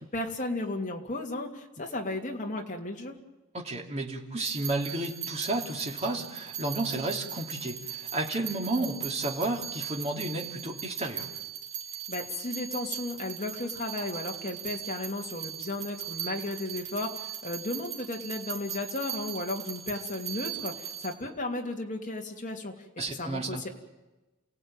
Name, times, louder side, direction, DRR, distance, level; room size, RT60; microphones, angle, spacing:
voice 1, 0.0-3.1 12.1-22.7 23.1-23.7, left 2 dB, 35° left, 1 dB, 2.8 m, -34 dB
voice 2, 3.5-11.3 23.0-23.6, right 2 dB, 30° right, 1 dB, 2.9 m, -32 dB
sound 1, 4.4-21.1, right 10 dB, 55° right, 3.0 m, -39 dB
29.5 x 17.5 x 9.1 m, 1.1 s
head